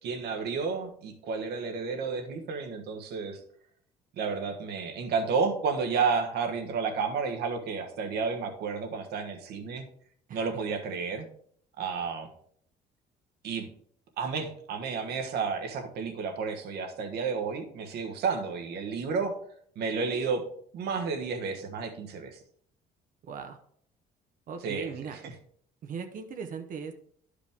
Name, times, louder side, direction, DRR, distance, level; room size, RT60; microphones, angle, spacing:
voice 1, 0.0-3.4 4.2-9.9 10.3-11.3 11.8-12.3 13.4-13.7 14.2-19.3 19.7-20.4 20.7-22.4 24.6-24.9 25.2-25.3, right 5 dB, 70° right, 5 dB, 1.2 m, -31 dB
voice 2, 23.2-23.6 24.5-25.2 25.8-26.9, right 6 dB, 55° right, 6 dB, 0.8 m, -38 dB
10.5 x 5.0 x 3.5 m, 0.63 s
cardioid pair, 110°, 17 cm